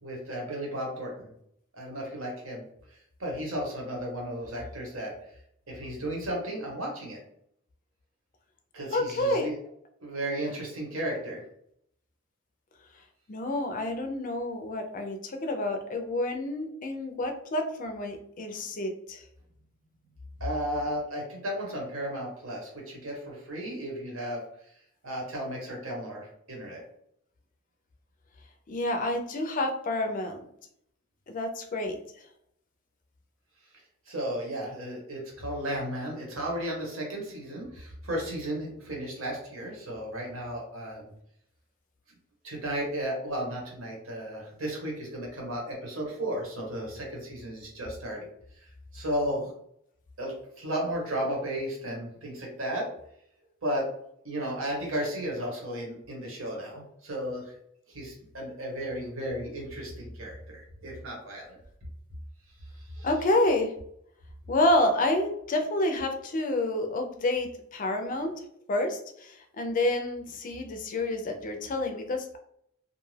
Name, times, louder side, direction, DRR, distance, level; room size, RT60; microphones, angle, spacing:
voice 1, 0.0-1.3 1.7-2.6 3.2-5.1 5.7-7.2 8.7-9.6 10.0-11.4 20.4-24.4 25.0-26.8 34.1-41.1 42.4-48.2 48.9-49.5 50.2-52.9 53.6-53.8 54.2-57.5 57.9-61.6 62.9-63.1, equal, 70° right, -1 dB, 1.0 m, -34 dB
voice 2, 8.9-9.5 13.3-19.2 28.7-30.5 31.3-32.0 63.0-63.7 64.5-68.3 68.7-72.4, left 1 dB, 40° left, 4 dB, 0.4 m, -28 dB
2.5 x 2.3 x 3.2 m, 0.71 s
head